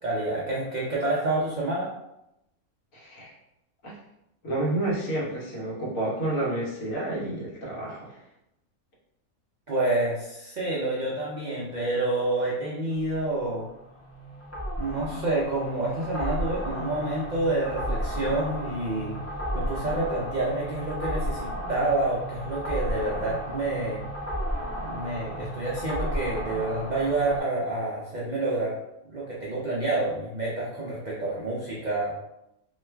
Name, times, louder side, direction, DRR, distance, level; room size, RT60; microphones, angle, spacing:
voice 1, 0.0-1.9 9.7-13.6 14.8-19.2 19.5-24.0 24.8-28.8 29.1-32.1, right 2 dB, 60° right, -5 dB, 0.4 m, -28 dB
voice 2, 2.9-3.3 3.8-4.0 4.4-8.2, right 1 dB, 70° left, -5 dB, 1.4 m, -30 dB
sound 1, 12.9-27.4, equal, 25° left, 0.3 m, -33 dB
3.0 x 2.3 x 3.2 m, 0.86 s
omnidirectional pair, 1.5 m